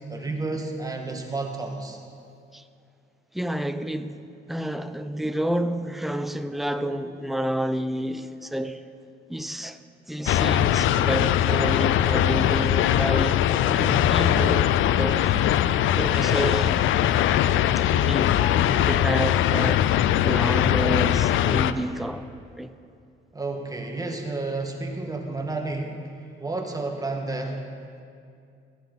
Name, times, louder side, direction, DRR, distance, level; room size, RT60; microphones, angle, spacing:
voice 1, 0.1-2.0 23.3-26.1 26.4-27.6, right 3 dB, 20° right, 1.7 m, -31 dB
voice 2, 3.3-8.8 9.3-9.8 10.1-15.4 15.9-16.8 17.7-18.5 18.8-19.8 20.2-22.3 22.6-22.7, right 1 dB, ahead, 0.6 m, -29 dB
sound 1, 10.3-21.7, left 11 dB, 80° left, 0.5 m, -21 dB
15.0 x 13.5 x 4.1 m
cardioid pair, 90°, 20 cm